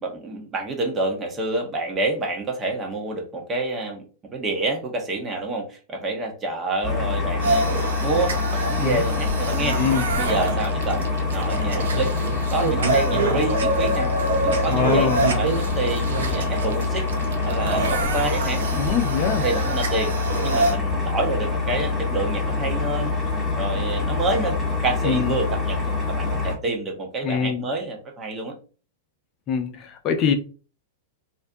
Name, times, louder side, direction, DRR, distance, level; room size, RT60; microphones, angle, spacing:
voice 1, 0.0-4.0 4.3-9.8 10.1-12.1 12.5-14.1 14.4-17.1 17.4-18.6 19.4-20.2 20.4-23.2 23.6-28.6, right 2 dB, 25° right, 0.8 m, -28 dB
sound 1, 6.8-26.5, left 4 dB, 15° left, 1.1 m, -25 dB
sound 2, 7.4-20.7, right 2 dB, 70° right, 0.5 m, -26 dB
voice 2, 8.7-9.1 9.6-10.0 14.7-15.2 18.7-19.4 25.0-25.3 27.2-27.6 29.5-30.3, left 6 dB, 35° left, 0.5 m, -24 dB
2.5 x 2.2 x 2.6 m
figure-of-eight pair, 100°, 0 cm